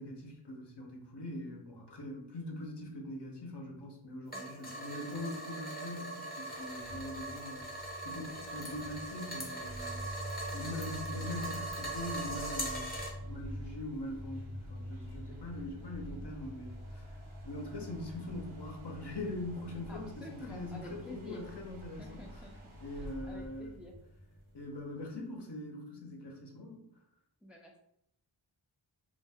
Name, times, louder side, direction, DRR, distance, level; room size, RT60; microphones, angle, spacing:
voice 1, 0.0-7.6 8.0-10.0 10.5-17.2 17.4-20.2 20.5-22.2 22.8-23.7 24.5-26.8, left 1 dB, 60° left, 0 dB, 0.7 m, -42 dB
sound 1, 4.3-13.1, right 1 dB, 20° left, 0.7 m, -41 dB
voice 2, 4.3-4.7 15.4-15.7 19.9-21.4 22.0-23.9 27.4-27.8, left 1 dB, ahead, 0 dB, 0.4 m, -50 dB
sound 2, 6.5-25.0, equal, 90° right, 0.7 m, -46 dB
2.2 x 2.1 x 3.3 m, 0.75 s
wide cardioid pair, 45°, 47 cm